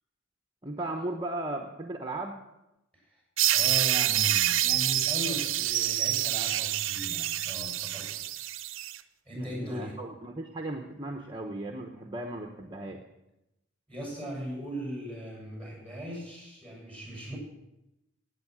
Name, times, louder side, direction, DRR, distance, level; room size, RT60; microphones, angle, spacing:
voice 1, 0.6-2.4 9.4-13.0, right 2 dB, 25° right, 3 dB, 1.0 m, -36 dB
sound 1, 3.4-9.0, right 13 dB, 90° right, 0.6 m, -27 dB
voice 2, 3.5-8.3 9.3-9.9 13.9-17.4, equal, 5° left, -2 dB, 7.1 m, -38 dB
17.5 x 9.0 x 6.2 m, 0.92 s
head